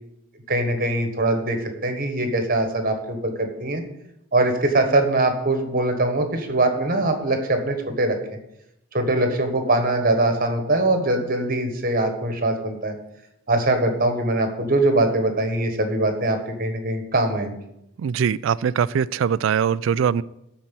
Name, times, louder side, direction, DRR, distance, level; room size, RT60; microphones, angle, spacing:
voice 1, 0.5-3.8 4.3-8.2 8.9-12.9 13.5-17.6, right 2 dB, 45° right, 5 dB, 1.4 m, -22 dB
voice 2, 18.0-20.2, right 7 dB, 70° right, 19 dB, 0.3 m, -22 dB
9.6 x 4.4 x 7.5 m, 0.84 s
head